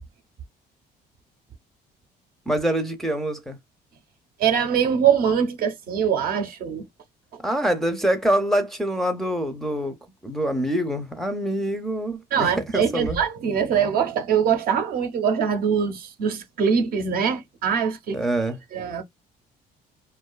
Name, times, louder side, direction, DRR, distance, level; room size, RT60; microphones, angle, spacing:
voice 1, 2.5-3.6 7.4-10.0 10.2-13.2 18.1-18.6, right 1 dB, ahead, 0.5 m, -25 dB
voice 2, 4.4-6.8 12.3-18.2 18.7-19.0, right 7 dB, 60° right, 0.7 m, -23 dB
2.6 x 2.3 x 2.2 m
cardioid pair, 110°, 17 cm